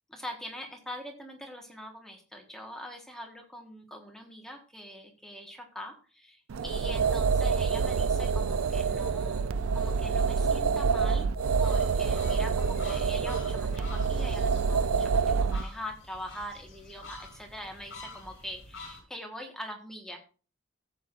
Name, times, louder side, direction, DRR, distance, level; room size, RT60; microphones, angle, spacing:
voice 1, 0.1-9.5 9.7-11.3 11.6-20.2, equal, ahead, 1 dB, 1.3 m, -43 dB
sound 1, 6.5-15.6, right 5 dB, 80° right, 0.4 m, -27 dB
sound 2, 11.4-19.0, left 2 dB, 60° left, 3.7 m, -47 dB
15.0 x 8.0 x 2.5 m, 0.37 s
head